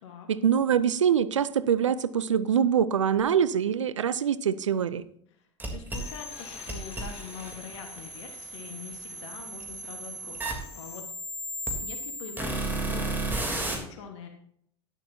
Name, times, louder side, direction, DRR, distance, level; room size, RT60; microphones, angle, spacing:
voice 1, 0.3-5.0, right 8 dB, 85° right, 17 dB, 0.5 m, -24 dB
voice 2, 5.3-11.0 11.8-14.3, left 6 dB, 70° left, 4 dB, 1.4 m, -44 dB
sound 1, 5.6-13.8, right 2 dB, 15° right, 3.1 m, -34 dB
sound 2, 5.9-11.0, left 7 dB, 40° left, 1.6 m, -47 dB
11.5 x 11.5 x 2.8 m, 0.68 s
hypercardioid pair, 80°, 15 cm